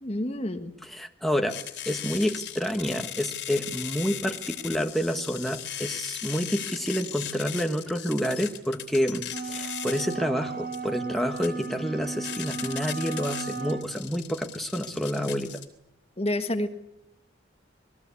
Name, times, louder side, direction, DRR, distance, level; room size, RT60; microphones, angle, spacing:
voice 1, 0.0-0.7 16.2-16.7, left 1 dB, 30° left, 8 dB, 1.6 m, -28 dB
voice 2, 0.9-1.6 1.9-15.5, equal, ahead, 4 dB, 1.4 m, -28 dB
sound 1, 1.5-15.7, left 11 dB, 70° left, 3.3 m, -38 dB
sound 2, 9.3-13.9, right 4 dB, 50° right, 3.9 m, -35 dB
29.0 x 21.0 x 8.4 m, 0.82 s
head